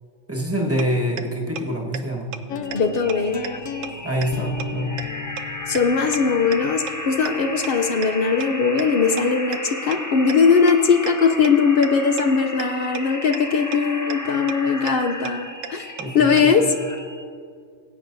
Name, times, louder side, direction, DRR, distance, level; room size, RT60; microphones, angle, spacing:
voice 1, 0.3-2.3 4.0-5.0 16.0-16.7, equal, 10° right, -2 dB, 1.3 m, -25 dB
sound 1, 0.8-0.9 1.2-1.3 1.6-1.7 1.9-2.0 2.3-2.4 2.7-2.8 3.1-3.2 3.4-3.5 3.8-3.9 4.2-4.3 4.6-4.7 5.0-5.1 5.4-5.5 5.7-5.8 6.1-6.2 6.5-6.6 6.9-7.0 7.3-7.4 7.6-7.7 8.0-8.1 8.4-8.5 8.8-8.9 9.2-9.3 9.5-9.6 9.9-10.0 10.3-10.4 10.7-10.8 11.1-11.2 11.4-11.5 11.8-11.9 12.2-12.3 12.6-12.7 13.0-13.1 13.3-13.4 13.7-13.8 14.1-14.2 14.5-14.6 14.9-15.0 15.3-15.4 15.6-15.7 16.0-16.1 16.4-16.5, right 9 dB, 85° right, 1.0 m, -31 dB
sound 2, 2.5-8.5, left 7 dB, 85° left, 1.0 m, -36 dB
sound 3, 2.6-17.2, left 1 dB, 15° left, 0.8 m, -34 dB
voice 2, 2.7-3.4 5.7-16.7, left 5 dB, 55° left, 6 dB, 0.7 m, -20 dB
18.0 x 8.7 x 2.6 m, 2.2 s
omnidirectional pair, 1.3 m